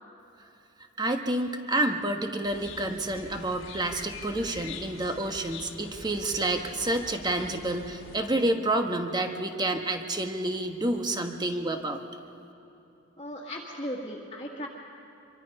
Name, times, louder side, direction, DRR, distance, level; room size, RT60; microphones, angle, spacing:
voice 1, 1.0-12.0, right 1 dB, 20° right, 5 dB, 1.2 m, -29 dB
sound 1, 2.4-8.2, left 4 dB, 65° left, 1.6 m, -44 dB
voice 2, 13.2-14.7, equal, 25° left, -6 dB, 1.9 m, -36 dB
25.5 x 24.0 x 5.5 m, 3.0 s
head